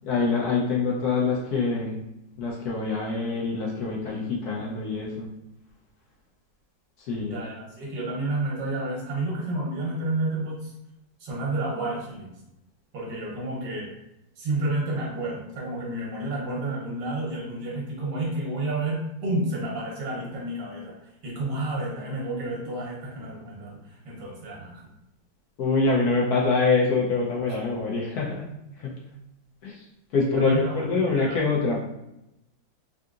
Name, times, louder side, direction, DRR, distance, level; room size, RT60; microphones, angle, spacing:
voice 1, 0.1-2.0 2.4-5.3 7.1-7.4 25.6-28.5 28.8-28.9 29.6-29.8 30.1-31.8, left 4 dB, 70° left, -3 dB, 1.0 m, -25 dB
voice 2, 7.2-10.7 11.2-12.3 12.9-13.9 14.4-20.9 21.2-24.8 30.3-31.4, right 2 dB, 70° right, -4 dB, 1.4 m, -30 dB
3.6 x 2.7 x 2.4 m, 0.89 s
omnidirectional pair, 2.0 m